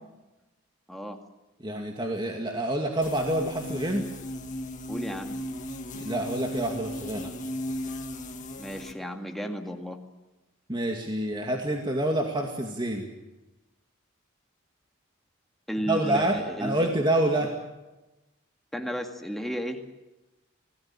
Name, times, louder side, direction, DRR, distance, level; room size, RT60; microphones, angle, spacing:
voice 1, 1.6-4.0 5.9-7.3 10.7-13.1 15.8-17.5, right 1 dB, 20° right, 1 dB, 2.3 m, -27 dB
sound 1, 3.0-8.9, left 1 dB, 35° left, 2.0 m, -36 dB
voice 2, 4.9-5.4 8.6-10.0 15.7-16.9 17.4-17.5 18.7-19.8, equal, ahead, 3 dB, 2.2 m, -33 dB
26.5 x 18.0 x 8.9 m, 1.1 s
head